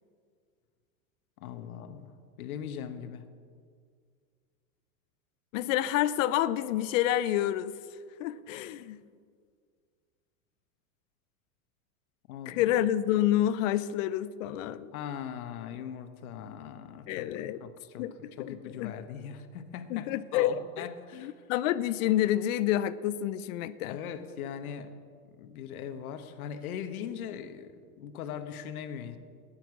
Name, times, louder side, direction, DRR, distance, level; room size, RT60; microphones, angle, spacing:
voice 1, 1.4-3.2 12.3-12.6 14.9-17.3 17.6-18.1 18.4-21.3 23.9-24.9 25.4-29.2, left 8 dB, 80° left, 9 dB, 1.3 m, -40 dB
voice 2, 5.5-7.8 8.2-9.0 12.5-14.9 17.1-17.6 18.0-18.9 19.9-20.9 21.1-24.0, left 12 dB, 60° left, 15 dB, 0.6 m, -28 dB
13.0 x 10.5 x 6.2 m, 2.1 s
supercardioid pair, 125°, 43 cm